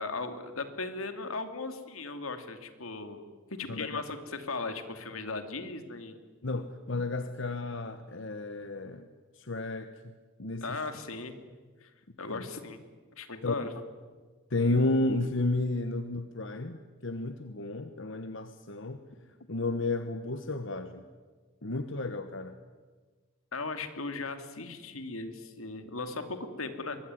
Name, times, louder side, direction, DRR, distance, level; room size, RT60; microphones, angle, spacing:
voice 1, 0.0-3.2 3.6-6.2 10.6-11.3 11.8-11.9 12.2-12.8 13.2-13.7 23.5-27.0, left 3 dB, 85° left, 8 dB, 2.7 m, -37 dB
voice 2, 3.7-4.0 6.4-9.1 9.4-9.9 10.4-10.8 12.3-12.4 13.4-13.5 14.5-19.0 19.5-21.1 21.6-22.6, left 2 dB, 60° left, 9 dB, 1.2 m, -32 dB
24.0 x 21.5 x 9.7 m, 1.4 s
head